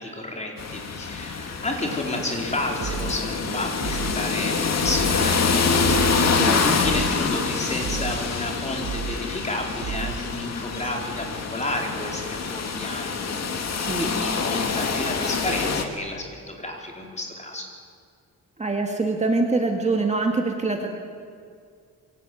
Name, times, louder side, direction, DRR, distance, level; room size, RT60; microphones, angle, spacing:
voice 1, 0.0-5.5 6.6-13.7 14.0-17.7, left 1 dB, 20° left, 1 dB, 4.7 m, -31 dB
sound 1, 0.6-15.9, left 5 dB, 50° left, 2.6 m, -26 dB
sound 2, 2.8-3.2 3.8-4.2 4.8-5.2 5.8-6.2 6.8-7.2 7.8-8.2 8.8-9.2 9.8-10.2, right 7 dB, 80° right, 2.1 m, -32 dB
voice 2, 18.6-20.9, right 3 dB, 20° right, 2 dB, 2.0 m, -24 dB
27.0 x 23.5 x 9.3 m, 2.2 s
wide cardioid pair, 160°, 33 cm